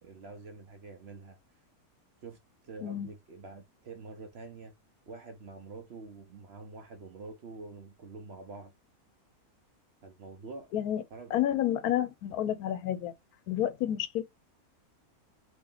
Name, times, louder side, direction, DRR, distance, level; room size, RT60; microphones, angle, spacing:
voice 1, 0.0-1.4 2.2-2.4 2.6-4.7 5.1-8.7 10.0-10.7 11.1-11.4, right 3 dB, 55° right, 0.8 m, -46 dB
voice 2, 11.3-13.1 13.5-14.2, left 11 dB, 80° left, 1.1 m, -30 dB
3.0 x 2.8 x 3.8 m
omnidirectional pair, 1.6 m